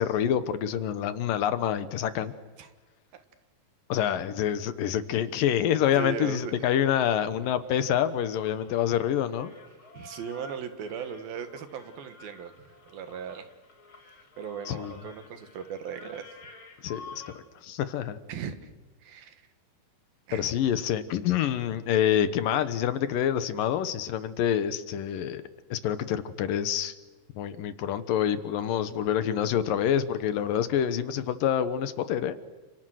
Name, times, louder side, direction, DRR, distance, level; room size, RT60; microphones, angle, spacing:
voice 1, 0.0-2.3 3.9-9.5 14.7-14.9 16.8-17.2 17.6-18.2 20.3-25.4 25.7-27.0 27.4-32.3, left 10 dB, 70° left, 12 dB, 2.7 m, -27 dB
voice 2, 5.9-6.5 9.8-13.5 13.9-16.4 18.3-18.7 19.0-19.5 20.3-20.5, right 7 dB, 75° right, 9 dB, 3.4 m, -38 dB
sound 1, 6.2-17.3, left 4 dB, 35° left, 3.1 m, -51 dB
29.5 x 27.5 x 6.4 m, 1.2 s
omnidirectional pair, 4.2 m